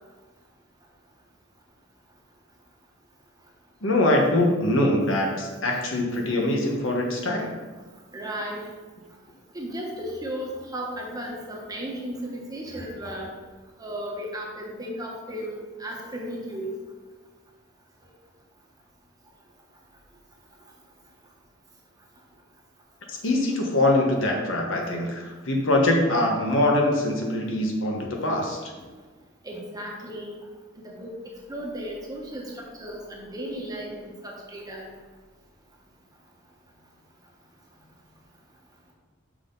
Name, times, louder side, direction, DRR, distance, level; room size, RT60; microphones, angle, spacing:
voice 1, 3.8-7.5 23.1-28.6, left 1 dB, 70° left, 0 dB, 1.3 m, -23 dB
voice 2, 8.1-8.6 9.5-13.3 13.8-16.8 28.4-28.5 28.8-28.9 29.4-30.3 30.8-31.1 31.5-34.8, equal, 20° right, -2 dB, 1.2 m, -35 dB
6.5 x 5.5 x 3.9 m, 1.3 s
head